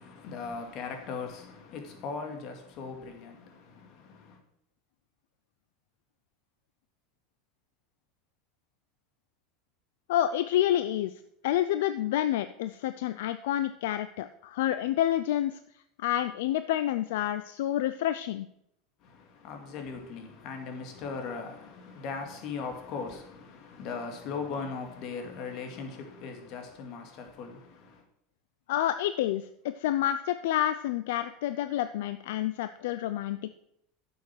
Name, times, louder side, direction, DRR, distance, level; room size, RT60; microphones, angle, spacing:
voice 1, 0.0-4.4 19.0-28.0, left 5 dB, 55° left, 2.5 m, -39 dB
voice 2, 10.1-11.1 11.4-15.6 16.0-18.5 28.7-33.6, left 12 dB, 80° left, 0.5 m, -28 dB
10.5 x 7.0 x 6.2 m
supercardioid pair, 125°, 0 cm